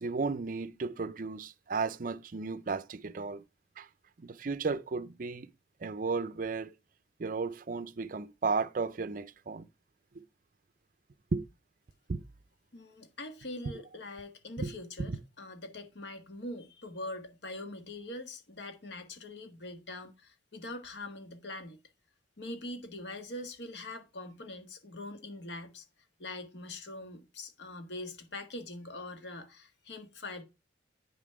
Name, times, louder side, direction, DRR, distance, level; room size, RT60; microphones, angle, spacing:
voice 1, 0.0-3.4 3.8-3.9 4.2-5.5 5.8-6.7 7.2-9.7 10.2-10.3 11.3-11.5 12.1-12.2 14.6-15.2, right 4 dB, 50° right, 0.5 m, -34 dB
voice 2, 12.7-21.8 22.4-25.8 26.2-30.4, left 2 dB, 70° left, 1.5 m, -43 dB
9.3 x 5.6 x 4.6 m
head